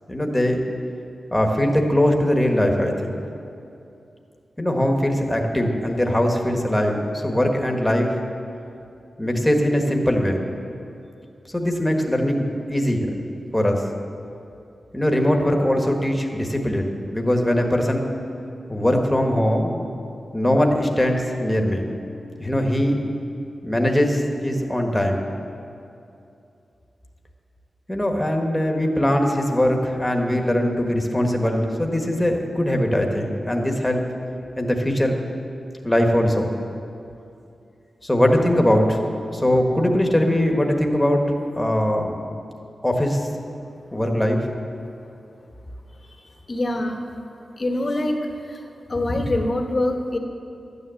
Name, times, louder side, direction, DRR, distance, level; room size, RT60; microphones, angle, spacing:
voice 1, 0.1-0.6 1.3-3.2 4.6-8.1 9.2-10.4 11.5-13.2 13.5-13.8 14.9-18.1 18.7-19.8 20.3-21.9 22.4-23.0 23.6-25.3 27.9-34.1 34.6-35.2 35.8-36.5 38.0-39.0 39.3-41.2 41.5-42.2 42.8-43.3 43.9-44.5, left 1 dB, 10° left, 2 dB, 1.5 m, -21 dB
voice 2, 46.5-47.0 47.6-48.2 48.9-50.2, left 1 dB, 40° left, 3 dB, 1.3 m, -23 dB
12.5 x 9.7 x 7.7 m, 2.7 s
wide cardioid pair, 110°, 0 cm